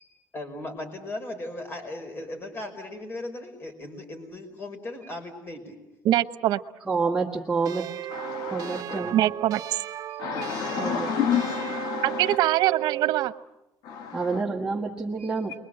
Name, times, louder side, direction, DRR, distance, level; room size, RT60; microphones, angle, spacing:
voice 1, 0.3-5.8 9.0-9.2, left 1 dB, 35° left, 6 dB, 5.4 m, -37 dB
voice 2, 6.0-6.6 9.1-9.8 12.0-13.3, right 14 dB, 85° right, 11 dB, 0.9 m, -23 dB
voice 3, 6.9-7.9 8.4-9.2 10.1-10.2 10.8-11.1 14.1-15.5, right 4 dB, 10° right, -4 dB, 1.5 m, -28 dB
sound 1, 7.7-13.4, right 13 dB, 60° right, 0.9 m, -35 dB
voice 4, 8.1-9.0 10.2-12.4 13.8-14.4, left 8 dB, 85° left, 7 dB, 1.5 m, -30 dB
30.0 x 22.5 x 7.8 m, 0.92 s
cardioid pair, 140°, 7 cm